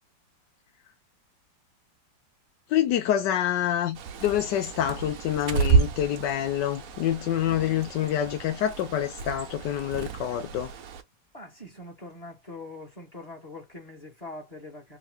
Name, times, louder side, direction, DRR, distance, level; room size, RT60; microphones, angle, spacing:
voice 1, 2.7-10.7, left 11 dB, 70° left, 1.2 m, -27 dB
Bird, 3.9-11.0, right 5 dB, 60° right, 1.0 m, -30 dB
voice 2, 11.3-15.0, left 2 dB, 20° left, 1.4 m, -43 dB
3.6 x 2.9 x 3.2 m
omnidirectional pair, 2.1 m